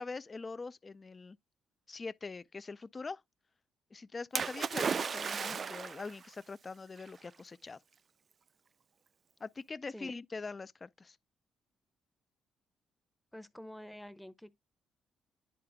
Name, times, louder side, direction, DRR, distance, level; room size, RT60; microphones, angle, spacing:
voice 1, 0.0-1.4 1.9-3.2 3.9-7.8 9.4-11.2, left 4 dB, 30° left, 0.4 m, -43 dB
Splash splatter, 4.3-6.1 7.1-7.2, right 6 dB, 45° right, 0.4 m, -34 dB
voice 2, 13.3-14.5, left 1 dB, 5° left, 0.8 m, -48 dB
10.0 x 4.8 x 2.2 m
cardioid pair, 90°, 0 cm